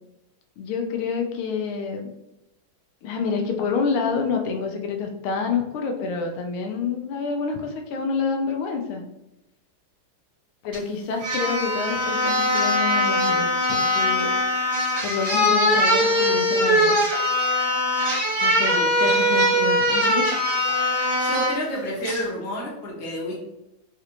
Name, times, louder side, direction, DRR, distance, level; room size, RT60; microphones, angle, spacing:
voice 1, 0.6-2.0 3.0-9.0 10.6-14.3 15.0-17.0 18.4-20.3, left 5 dB, 80° left, 3 dB, 1.4 m, -28 dB
sound 1, 10.7-10.8 11.2-21.6 22.0-22.2, left 1 dB, 70° right, 1.9 m, -21 dB
voice 2, 21.2-23.4, equal, 65° left, -4 dB, 1.7 m, -30 dB
4.1 x 2.5 x 2.9 m, 0.91 s
omnidirectional pair, 2.4 m